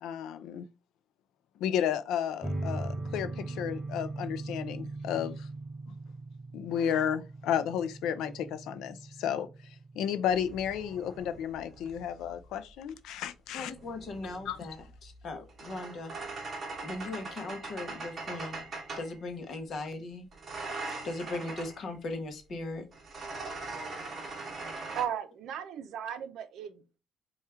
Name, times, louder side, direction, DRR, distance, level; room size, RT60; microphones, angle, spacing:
voice 1, 0.0-0.7 1.6-5.5 6.5-9.5 10.0-13.7 14.5-14.6, left 9 dB, 80° left, 0.4 m, -32 dB
sound 1, 2.4-11.4, right 2 dB, 15° right, 0.5 m, -40 dB
sound 2, 10.3-12.4 13.6-19.2 20.3-21.8 22.9-25.0, right 3 dB, 30° right, 1.0 m, -41 dB
voice 2, 13.5-14.8 15.0-16.1 16.8-18.6 19.0-20.3 21.0-22.8, left 2 dB, 40° left, 0.7 m, -38 dB
voice 3, 25.0-27.0, right 9 dB, 65° right, 0.5 m, -36 dB
4.3 x 2.3 x 3.3 m
cardioid pair, 170°, 0 cm